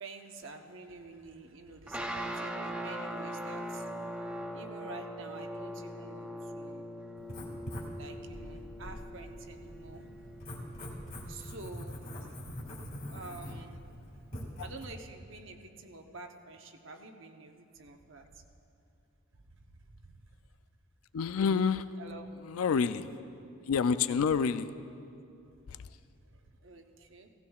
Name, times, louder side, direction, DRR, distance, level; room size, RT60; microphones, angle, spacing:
voice 1, 0.0-3.9 4.5-6.8 7.9-10.3 11.3-12.0 12.8-13.8 14.6-18.4 19.3-20.1 22.0-22.3 26.3-27.3, right 3 dB, 60° right, 4 dB, 0.8 m, -48 dB
sound 1, 1.9-12.4, equal, 5° right, 0.4 m, -41 dB
Writing, 7.2-14.8, equal, 40° left, 2.0 m, -44 dB
voice 2, 21.1-21.9 22.4-23.1 23.7-24.7 25.7-25.9, left 6 dB, 80° left, 13 dB, 0.4 m, -28 dB
17.0 x 15.5 x 2.4 m, 2.6 s
head